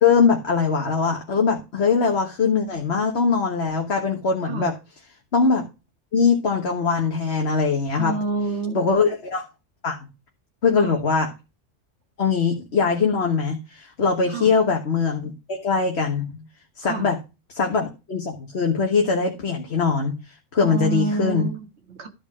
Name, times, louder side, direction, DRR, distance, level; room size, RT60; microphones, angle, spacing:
voice 1, 0.0-4.7 5.3-5.6 6.1-8.1 8.7-9.4 9.8-10.0 10.6-11.3 12.2-16.4 16.8-17.2 17.5-20.1 20.5-21.5, left 5 dB, 55° left, 1.7 m, -21 dB
voice 2, 8.0-8.8 10.8-11.0 14.3-14.5 16.8-17.1 20.6-22.1, right 3 dB, 60° right, 1.9 m, -28 dB
13.0 x 5.2 x 6.1 m
omnidirectional pair, 1.3 m